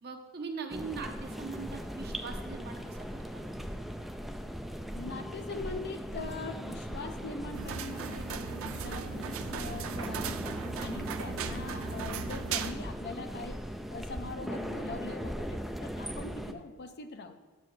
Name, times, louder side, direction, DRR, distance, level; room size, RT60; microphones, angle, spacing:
voice 1, 0.0-3.4 16.4-16.6, right 5 dB, 50° right, 4 dB, 0.9 m, -41 dB
sound 1, 0.7-16.5, equal, ahead, 0.4 m, -39 dB
voice 2, 4.9-17.4, left 3 dB, 50° left, 7 dB, 0.6 m, -42 dB
sound 2, 7.5-12.7, right 7 dB, 65° right, 0.4 m, -38 dB
9.3 x 7.5 x 3.2 m, 1.3 s
head